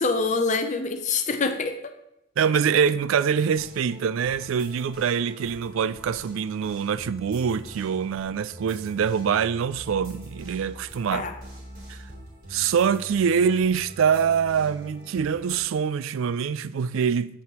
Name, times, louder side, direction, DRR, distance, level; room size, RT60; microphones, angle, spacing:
voice 1, 0.0-1.9 11.1-11.4, left 4 dB, 35° left, 0.6 m, -25 dB
voice 2, 2.4-11.3 11.9-12.0 12.5-17.4, right 7 dB, 75° right, 0.3 m, -24 dB
sound 1, 3.3-15.6, right 1 dB, 45° right, 3.2 m, -44 dB
8.4 x 7.8 x 3.0 m
head